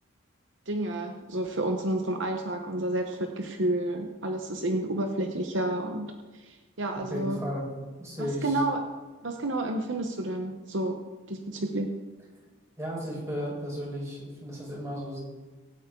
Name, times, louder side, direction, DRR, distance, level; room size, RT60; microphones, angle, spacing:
voice 1, 0.7-7.4 8.2-8.8 9.2-11.0 11.3-11.9, right 1 dB, 60° right, 4 dB, 1.0 m, -30 dB
voice 2, 7.1-7.7 8.0-8.6 12.8-15.2, equal, 15° right, -4 dB, 4.9 m, -34 dB
24.0 x 9.2 x 3.8 m, 1.3 s
head